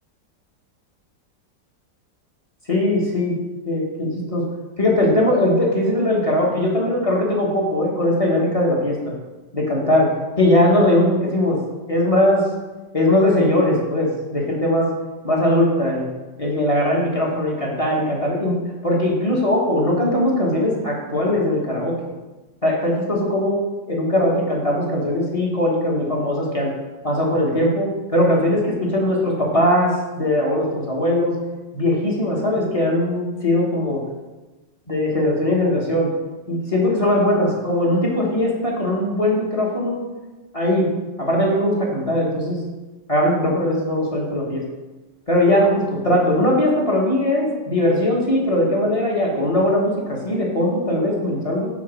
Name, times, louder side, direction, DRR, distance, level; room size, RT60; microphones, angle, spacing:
voice 1, 2.7-3.4 3.6-4.4 4.8-9.0 9.5-10.1 10.4-11.6 11.9-12.4 12.9-14.9 15.2-16.0 16.4-18.6 18.8-22.0 22.6-23.6 23.9-26.7 27.0-31.3 31.7-34.0 34.9-36.1 36.5-40.0 40.5-40.9 41.2-42.6 43.1-44.6 45.3-51.7, left 1 dB, 25° left, -2 dB, 1.0 m, -20 dB
6.1 x 4.1 x 6.0 m, 1.1 s
omnidirectional pair, 2.0 m